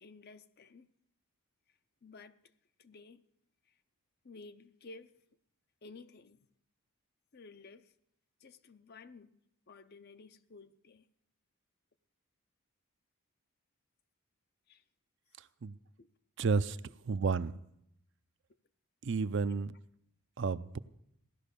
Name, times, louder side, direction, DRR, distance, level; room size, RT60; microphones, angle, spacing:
voice 1, 0.0-0.9 2.0-2.4 2.8-3.2 4.2-5.2 5.8-6.4 7.3-7.9 8.4-9.3 9.7-11.1 14.7-14.8 16.0-16.1 19.5-19.6, left 3 dB, 45° left, 0.6 m, -53 dB
voice 2, 16.4-16.8 17.1-17.5 19.0-19.7 20.4-20.8, right 4 dB, 55° right, 0.5 m, -31 dB
16.5 x 11.5 x 6.8 m
head